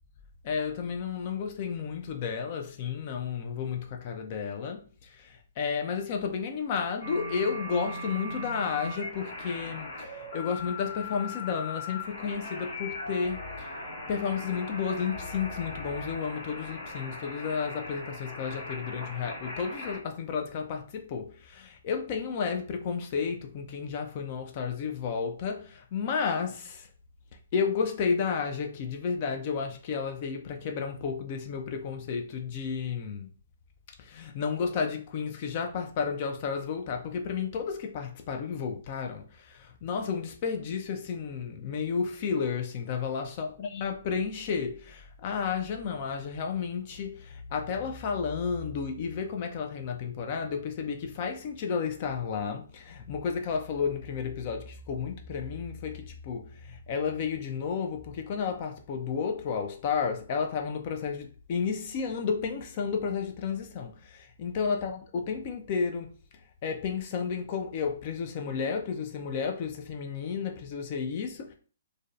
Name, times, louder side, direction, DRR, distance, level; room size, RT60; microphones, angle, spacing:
voice 1, 0.4-13.7 14.1-26.9 27.5-33.3 34.0-66.1 66.6-71.5, left 6 dB, 40° left, 0.3 m, -32 dB
sound 1, 7.0-20.0, left 2 dB, 60° left, 1.1 m, -39 dB
2.5 x 2.1 x 2.4 m
hypercardioid pair, 140°, 0 cm